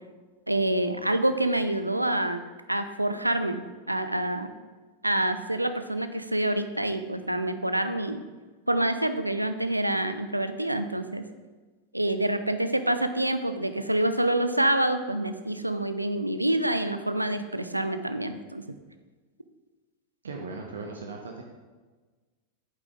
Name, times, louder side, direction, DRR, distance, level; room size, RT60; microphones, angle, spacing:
voice 1, 0.5-2.4 2.7-4.5 5.0-8.2 8.7-11.2 11.9-18.6, right 1 dB, 85° right, 10 dB, 0.5 m, -27 dB
voice 2, 20.2-21.4, right 3 dB, 70° right, 1 dB, 1.0 m, -38 dB
8.6 x 8.3 x 3.8 m, 1.3 s
figure-of-eight pair, 90°, 0 cm